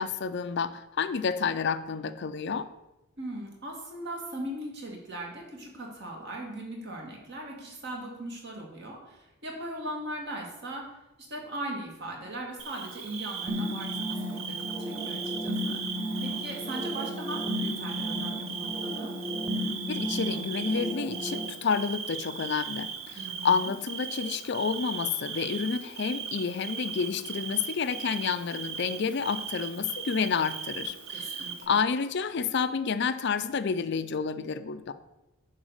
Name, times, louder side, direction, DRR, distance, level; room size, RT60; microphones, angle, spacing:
voice 1, 0.0-2.7 19.9-34.9, left 6 dB, 55° left, 12 dB, 0.5 m, -30 dB
voice 2, 3.2-10.9 11.3-15.8 16.2-19.1 23.1-23.7 31.1-31.8, right 1 dB, 55° right, 0 dB, 2.2 m, -39 dB
Bird / Cricket, 12.6-31.7, right 7 dB, 80° right, 0.9 m, -38 dB
sound 1, 13.5-21.5, left 1 dB, 10° right, 0.9 m, -34 dB
10.5 x 4.0 x 6.5 m, 0.93 s
head